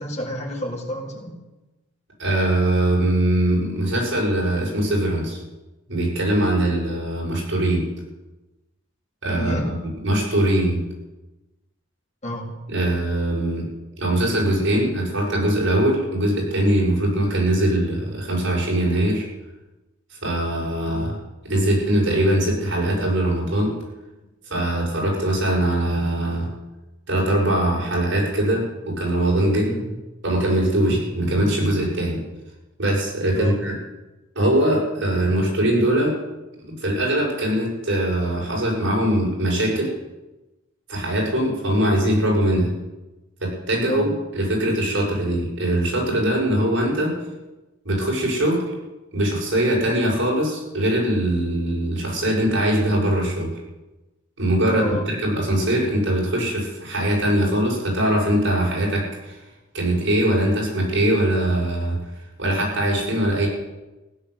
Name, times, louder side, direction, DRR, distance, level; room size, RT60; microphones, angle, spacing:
voice 1, 0.0-1.4 9.4-9.7 12.2-12.5 20.9-21.1 29.6-29.9 30.8-31.0 33.3-33.6 41.7-41.8 43.8-44.1 54.6-55.1, left 1 dB, 35° left, -2 dB, 3.9 m, -30 dB
voice 2, 2.2-5.4 5.9-7.8 9.2-9.7 10.0-10.8 12.7-13.7 14.0-19.3 20.2-21.1 21.4-23.7 24.5-26.5 27.1-29.7 30.2-32.2 32.8-33.7 34.3-36.1 36.7-39.9 40.9-42.7 43.4-47.1 47.8-48.7 49.1-53.5 54.4-59.4 59.7-62.0 62.4-63.5, right 1 dB, 65° right, -3 dB, 7.6 m, -21 dB
16.0 x 10.5 x 8.4 m, 1.1 s
head